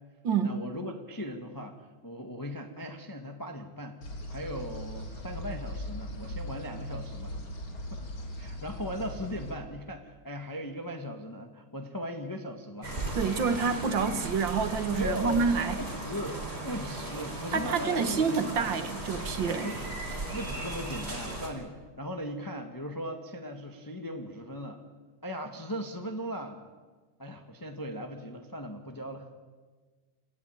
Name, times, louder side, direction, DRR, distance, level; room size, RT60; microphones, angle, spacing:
voice 1, 0.4-4.0 4.3-7.4 7.9-8.0 8.4-12.9 15.0-15.4 15.8-18.7 19.6-19.8 20.3-24.8 25.2-26.6 27.2-29.3, equal, 10° left, 4 dB, 1.4 m, -38 dB
sound 1, 4.0-9.5, left 1 dB, 65° left, 4.1 m, -39 dB
sound 2, 12.8-21.5, right 2 dB, 25° right, 4.5 m, -37 dB
voice 2, 13.2-15.8 17.5-19.7, right 5 dB, 60° right, 9 dB, 2.1 m, -28 dB
29.0 x 15.0 x 9.4 m, 1.4 s
omnidirectional pair, 2.4 m